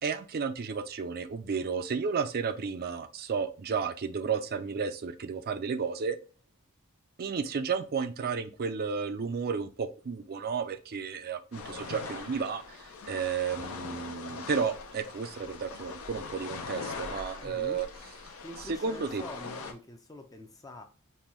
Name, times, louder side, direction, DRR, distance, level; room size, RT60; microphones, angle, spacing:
voice 1, 0.0-6.2 7.2-17.9 18.8-19.2, right 5 dB, 45° right, 10 dB, 0.4 m, -32 dB
sound 1, 11.5-19.7, left 4 dB, 70° left, 0.7 m, -42 dB
voice 2, 17.4-17.8 18.4-20.8, left 2 dB, 15° left, 5 dB, 0.4 m, -45 dB
5.3 x 2.2 x 3.0 m, 0.37 s
head